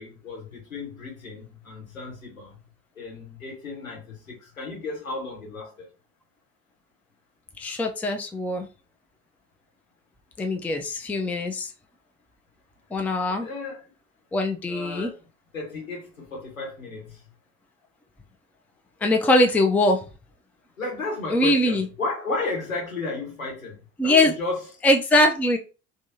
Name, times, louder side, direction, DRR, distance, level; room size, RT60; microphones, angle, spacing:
voice 1, 0.0-2.6 3.0-5.9 13.3-13.8 14.7-15.1 15.5-17.3 20.8-24.6, left 3 dB, 85° left, -2 dB, 1.2 m, -33 dB
voice 2, 7.6-8.7 10.4-11.7 12.9-13.5 14.3-15.1 19.0-20.0 21.3-21.9 24.0-24.3 24.8-25.6, left 1 dB, 5° left, 4 dB, 0.4 m, -22 dB
3.4 x 2.6 x 2.7 m, 0.32 s
figure-of-eight pair, 55°, 40 cm